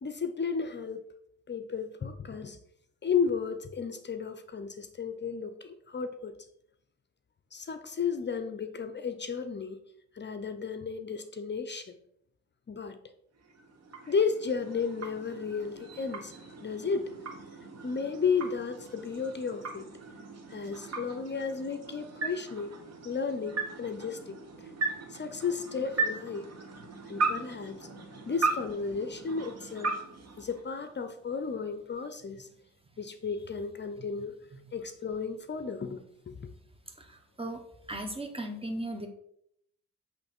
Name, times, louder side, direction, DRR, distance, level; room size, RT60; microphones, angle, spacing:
voice 1, 0.0-1.0 1.5-2.6 3.0-6.4 7.5-9.8 10.1-12.0 12.7-13.0 14.1-16.3 16.6-17.1 17.8-19.9 20.5-22.7 23.0-24.7 25.1-26.4 27.1-27.9 28.2-29.9 30.4-32.5 33.0-34.3 34.7-36.5, left 5 dB, 35° left, 9 dB, 0.7 m, -33 dB
sound 1, 13.4-31.1, right 3 dB, 50° right, 1.6 m, -37 dB
voice 2, 37.0-37.6 37.9-39.1, right 1 dB, 15° right, 5 dB, 1.4 m, -37 dB
7.8 x 3.3 x 4.5 m, 0.71 s
supercardioid pair, 65°, 32 cm